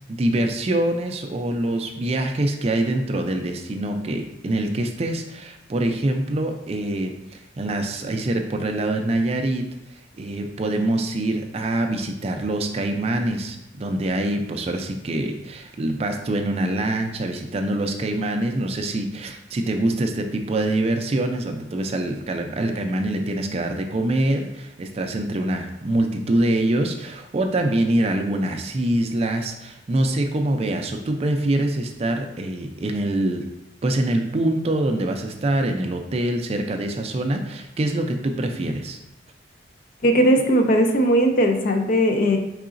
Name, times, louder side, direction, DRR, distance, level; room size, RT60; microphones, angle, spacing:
voice 1, 0.1-9.6 9.9-33.4 33.8-39.0, right 1 dB, 30° right, 4 dB, 0.3 m, -24 dB
voice 2, 40.0-42.4, equal, 45° left, 4 dB, 0.5 m, -18 dB
4.8 x 3.7 x 2.5 m, 0.86 s
head